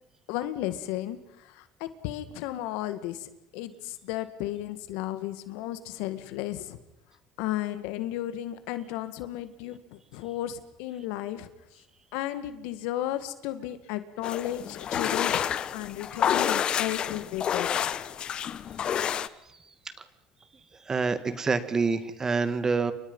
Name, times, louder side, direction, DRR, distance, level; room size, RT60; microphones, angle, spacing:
voice 1, 0.3-6.8 7.4-11.5 12.1-15.4 15.7-18.0, left 13 dB, 85° left, 12 dB, 2.0 m, -34 dB
sound 1, 14.2-19.3, left 9 dB, 45° left, 1.0 m, -29 dB
voice 2, 20.9-22.9, right 4 dB, 25° right, 12 dB, 2.0 m, -26 dB
29.5 x 25.0 x 5.6 m, 0.84 s
cardioid pair, 110°, 2 cm